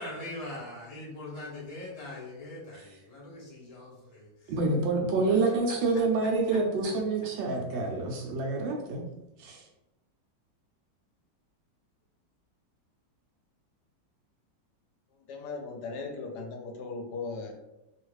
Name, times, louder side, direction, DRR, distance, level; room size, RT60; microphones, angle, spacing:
voice 1, 0.0-4.3 5.3-5.4, left 1 dB, 50° left, 0.4 m, -41 dB
voice 2, 4.5-9.0 9.4-9.6, right 3 dB, 85° right, 1.3 m, -27 dB
voice 3, 15.3-17.5, left 4 dB, 70° left, 1.1 m, -37 dB
3.1 x 2.4 x 3.1 m
omnidirectional pair, 1.9 m